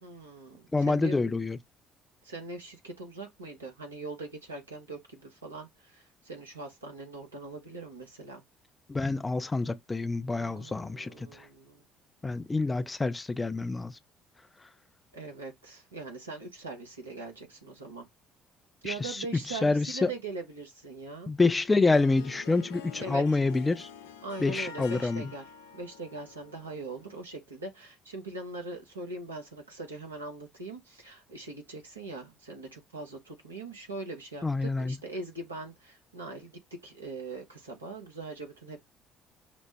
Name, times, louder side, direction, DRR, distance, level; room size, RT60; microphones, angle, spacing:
voice 1, 0.0-1.2 2.2-8.4 10.3-11.9 15.1-18.1 18.8-21.3 23.0-23.4 24.2-25.4 25.7-38.8, right 2 dB, 90° right, 0.9 m, -41 dB
voice 2, 0.7-1.6 8.9-11.5 12.2-14.0 18.8-19.2 19.5-20.1 21.3-23.9 24.4-25.3 34.4-35.0, left 3 dB, 20° left, 0.5 m, -27 dB
Harp, 21.6-27.4, left 7 dB, 75° left, 0.4 m, -47 dB
5.1 x 2.0 x 3.4 m
figure-of-eight pair, 50°, 0 cm